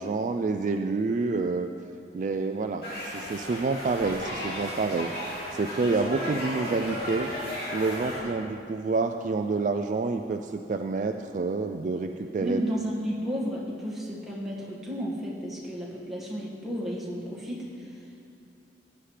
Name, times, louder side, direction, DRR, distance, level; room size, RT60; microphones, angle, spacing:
voice 1, 0.0-1.7 2.1-5.1 5.5-7.3 7.7-12.6, right 3 dB, 45° right, 6 dB, 0.3 m, -28 dB
sound 1, 2.8-8.2, equal, 55° left, 2.9 m, -35 dB
voice 2, 12.4-18.3, equal, ahead, -6 dB, 1.8 m, -33 dB
15.5 x 9.6 x 3.3 m, 2.5 s
head